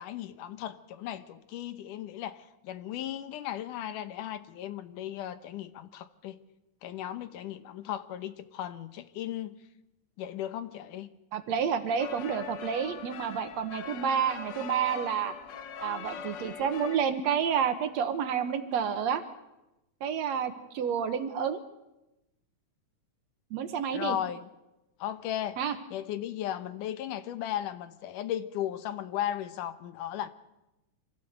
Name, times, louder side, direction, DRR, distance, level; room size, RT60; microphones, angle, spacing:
voice 1, 0.0-6.4 6.8-9.6 10.2-11.1 23.9-24.5 25.0-25.6 25.9-30.3, left 11 dB, 85° left, 2.6 m, -36 dB
voice 2, 11.3-15.3 15.8-19.2 20.0-21.6 23.5-24.2 25.6-25.8, right 7 dB, 65° right, 2.3 m, -29 dB
sound 1, 12.0-17.0, left 7 dB, 65° left, 1.1 m, -41 dB
25.5 x 16.0 x 8.1 m
omnidirectional pair, 3.6 m